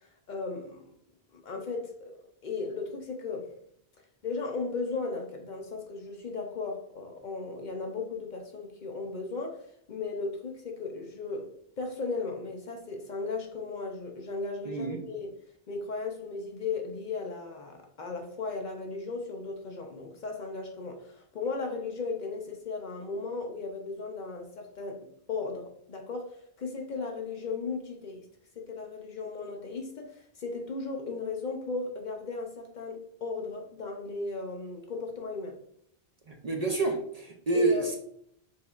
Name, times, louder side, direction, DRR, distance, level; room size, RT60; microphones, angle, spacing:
voice 1, 0.3-0.9 1.3-2.2 2.4-3.5 4.2-11.5 11.8-15.3 15.7-25.0 25.3-28.3 28.6-35.6 37.5-37.9, left 4 dB, 55° left, 3 dB, 0.6 m, -36 dB
voice 2, 14.6-15.0 36.3-38.0, right 3 dB, 45° right, 2 dB, 0.5 m, -28 dB
4.3 x 3.3 x 2.3 m, 0.67 s
omnidirectional pair, 1.1 m